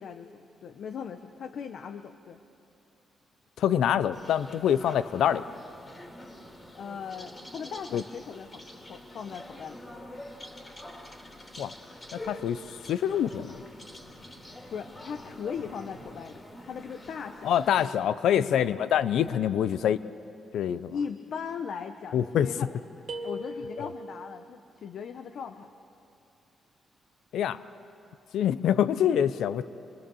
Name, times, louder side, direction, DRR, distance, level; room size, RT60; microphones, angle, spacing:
voice 1, 0.0-2.4 6.7-9.9 14.7-18.6 20.9-22.8 23.0-25.7, left 6 dB, 65° left, 8 dB, 0.8 m, -39 dB
voice 2, 3.6-5.4 7.9-8.0 11.6-11.7 12.1-12.6 12.9-13.5 17.4-20.0 20.5-20.9 22.1-22.5 23.8-23.9 27.3-27.6 28.3-29.6, left 9 dB, 90° left, 15 dB, 0.5 m, -25 dB
sound 1, 4.1-17.9, left 1 dB, 25° left, 2.7 m, -46 dB
sound 2, 23.1-24.3, equal, 45° right, 1.7 m, -37 dB
26.0 x 21.5 x 7.0 m, 2.7 s
cardioid pair, 130°, 0 cm